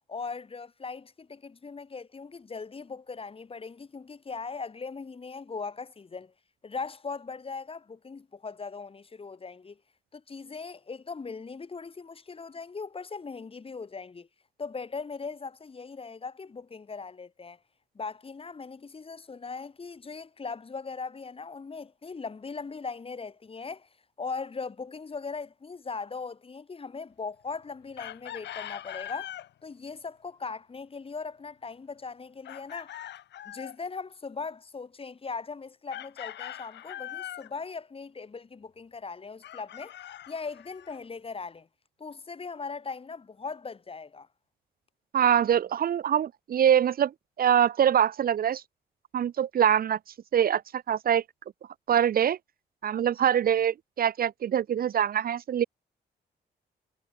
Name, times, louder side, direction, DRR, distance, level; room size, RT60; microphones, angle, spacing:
voice 1, 0.1-6.3 6.6-9.8 10.1-14.3 14.6-17.6 17.9-23.9 24.2-33.0 33.4-40.0 40.3-41.7 42.0-44.3, left 4 dB, 30° left, 7.6 m, -39 dB
Chicken rooster, 28.0-29.5 32.5-33.8 35.9-37.5 39.4-41.0, left 12 dB, 90° left, 2.6 m, -41 dB
voice 2, 45.1-47.1 47.4-48.6 49.1-50.0 50.3-51.2 51.9-52.4 52.8-55.6, right 9 dB, 55° right, 0.8 m, -24 dB
cardioid pair, 120°, 18 cm